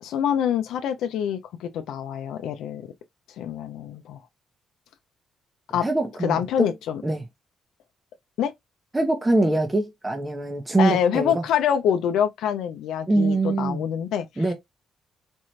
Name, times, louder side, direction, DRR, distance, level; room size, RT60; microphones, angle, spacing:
voice 1, 0.0-2.9 3.4-4.2 5.7-5.9 6.2-7.0 8.4-8.5 10.8-14.4, left 9 dB, 85° left, 0.6 m, -25 dB
voice 2, 5.8-6.7 7.0-7.2 8.9-11.4 13.1-13.8 14.4-14.5, right 2 dB, 15° right, 0.9 m, -23 dB
4.4 x 2.4 x 3.2 m
cardioid pair, 90°, 0 cm